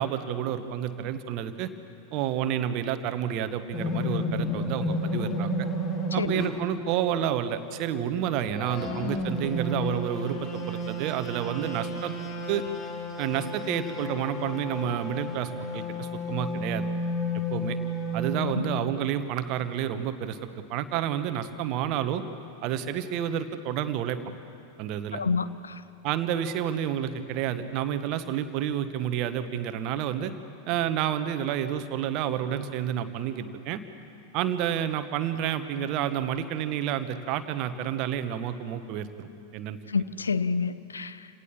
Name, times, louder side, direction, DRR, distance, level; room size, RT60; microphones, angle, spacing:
voice 1, 0.0-1.7 2.1-5.5 6.1-12.1 12.5-12.6 13.2-16.8 17.5-17.8 18.1-22.2 22.6-24.2 24.8-25.2 26.0-30.3 30.7-33.8 34.3-39.8, right 10 dB, 40° right, 10 dB, 1.3 m, -30 dB
sound 1, 3.7-6.7 8.3-18.5, left 1 dB, 30° left, 2.9 m, -32 dB
voice 2, 25.1-25.8 39.9-41.3, left 5 dB, 75° left, 14 dB, 0.7 m, -29 dB
28.0 x 18.0 x 7.3 m, 2.6 s
figure-of-eight pair, 90°, 0 cm